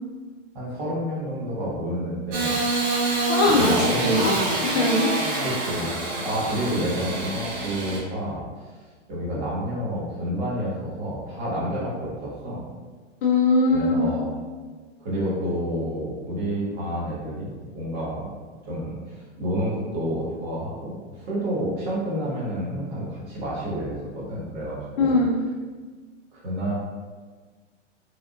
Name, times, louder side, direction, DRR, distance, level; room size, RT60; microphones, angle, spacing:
voice 1, 0.5-2.6 3.1-3.2 3.6-4.3 5.4-8.4 9.1-12.6 13.7-14.3 15.0-18.3 18.6-25.1 26.3-26.7, equal, 40° right, -6 dB, 1.2 m, -29 dB
Engine starting / Sawing, 2.3-8.0, right 2 dB, 75° right, 1.1 m, -26 dB
voice 2, 3.2-5.1 13.2-14.2 25.0-25.4, left 2 dB, 45° left, -2 dB, 0.5 m, -21 dB
3.4 x 2.4 x 2.4 m, 1.4 s
hypercardioid pair, 140°, 37 cm